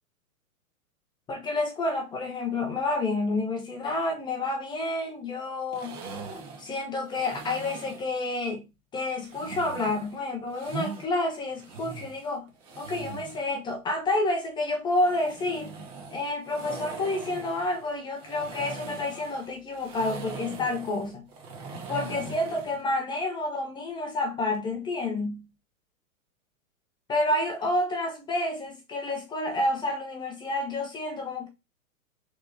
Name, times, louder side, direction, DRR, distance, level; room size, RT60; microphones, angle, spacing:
voice 1, 1.3-6.0 6.6-8.6 8.9-12.5 12.8-15.7 16.1-21.2 21.9-25.5 27.1-31.5, left 2 dB, 10° left, 0.4 m, -29 dB
sound 1, 5.7-8.1 9.2-11.0 11.5-13.5 14.9-22.8, right 4 dB, 35° right, 1.5 m, -41 dB
3.4 x 2.9 x 3.9 m
hypercardioid pair, 120°, 42 cm